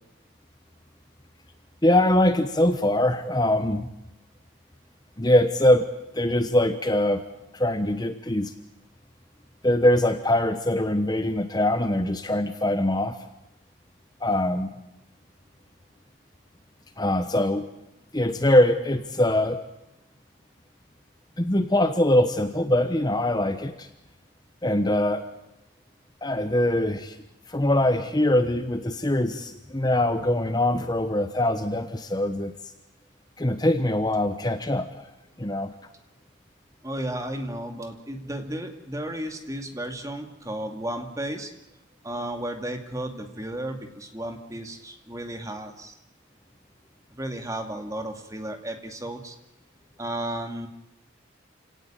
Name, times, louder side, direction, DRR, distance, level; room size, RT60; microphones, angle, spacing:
voice 1, 1.8-3.9 5.2-5.9 6.1-7.2 7.5-8.5 9.6-13.2 14.2-14.7 17.0-17.7 18.1-19.6 21.4-23.9 24.6-25.2 26.2-27.2 27.5-32.5 33.4-34.9 35.4-35.7, left 1 dB, 20° left, 9 dB, 1.0 m, -22 dB
voice 2, 36.8-41.5 42.0-46.0 47.2-49.4 50.0-50.7, right 1 dB, 15° right, 6 dB, 2.3 m, -33 dB
28.0 x 18.0 x 8.9 m, 0.91 s
head